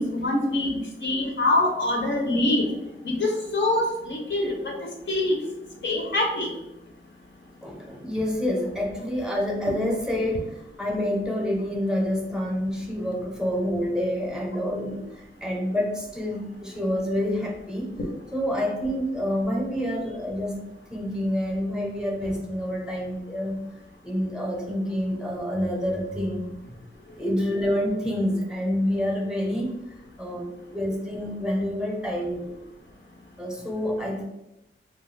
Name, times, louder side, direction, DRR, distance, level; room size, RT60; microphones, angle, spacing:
voice 1, 0.0-2.6 3.0-4.8 5.1-5.4 5.8-6.5, left 1 dB, 65° left, 1 dB, 0.6 m, -24 dB
voice 2, 7.6-17.9 18.3-23.6 24.0-26.8 27.2-29.8 30.2-32.5 33.4-34.2, equal, 5° right, -1 dB, 0.6 m, -28 dB
2.4 x 2.2 x 3.2 m, 0.90 s
wide cardioid pair, 100°, 21 cm